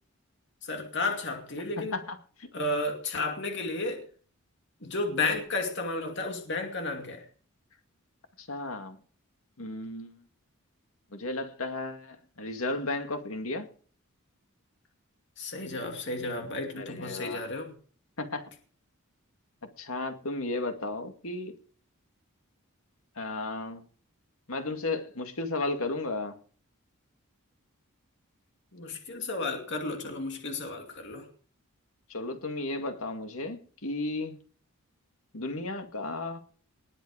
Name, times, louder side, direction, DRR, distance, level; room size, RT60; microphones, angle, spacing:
voice 1, 0.6-2.0 2.5-4.0 4.8-7.3 15.4-17.8 28.7-31.3, left 2 dB, 55° left, 2.5 m, -32 dB
voice 2, 1.9-2.5 8.4-9.0 9.6-10.2 11.1-13.7 16.8-17.4 18.2-18.5 19.8-21.5 23.2-23.8 24.5-26.4 32.1-34.4 35.3-36.4, left 2 dB, 75° left, 2.2 m, -34 dB
20.0 x 8.2 x 4.9 m
head